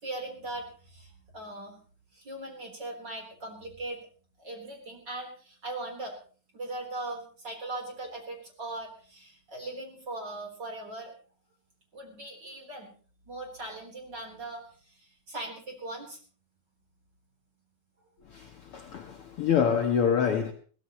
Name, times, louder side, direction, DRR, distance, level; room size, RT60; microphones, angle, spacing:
voice 1, 0.0-1.8 2.1-4.1 4.4-6.1 6.5-11.1 11.9-12.9 13.3-16.2, right 2 dB, 30° right, 4.5 m, -39 dB
voice 2, 18.2-20.5, left 7 dB, 75° left, 1.3 m, -26 dB
22.5 x 16.0 x 3.1 m
omnidirectional pair, 4.1 m